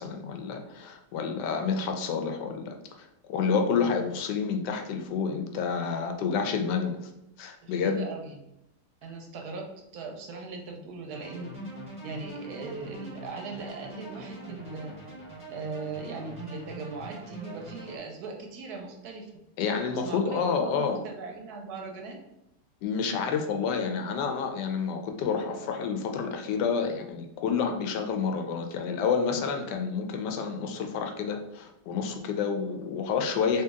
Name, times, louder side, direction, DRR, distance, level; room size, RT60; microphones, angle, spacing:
voice 1, 0.0-7.1 7.4-8.1 19.6-21.0 22.8-33.6, left 6 dB, 80° left, 4 dB, 1.2 m, -29 dB
voice 2, 7.6-8.4 9.0-11.5 12.0-14.9 15.5-19.3 19.9-22.2, right 4 dB, 70° right, 2 dB, 1.1 m, -39 dB
sound 1, 11.1-18.0, right 1 dB, 5° right, 1.0 m, -43 dB
3.1 x 2.8 x 3.5 m, 0.83 s
omnidirectional pair, 1.9 m